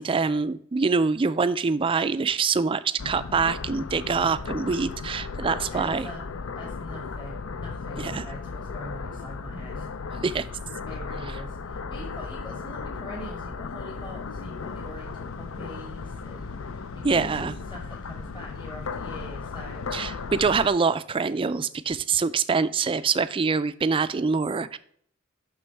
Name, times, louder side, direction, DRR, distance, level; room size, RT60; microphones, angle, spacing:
voice 1, 0.0-6.1 8.0-8.3 10.2-10.5 17.0-17.5 19.9-24.8, right 5 dB, 25° right, 14 dB, 0.3 m, -25 dB
sound 1, 3.0-20.7, left 4 dB, 75° left, 0.5 m, -36 dB
voice 2, 5.4-6.2 6.5-9.9 10.1-10.2 10.9-20.1, equal, 20° left, -1 dB, 1.3 m, -43 dB
6.2 x 6.1 x 4.5 m, 0.62 s
head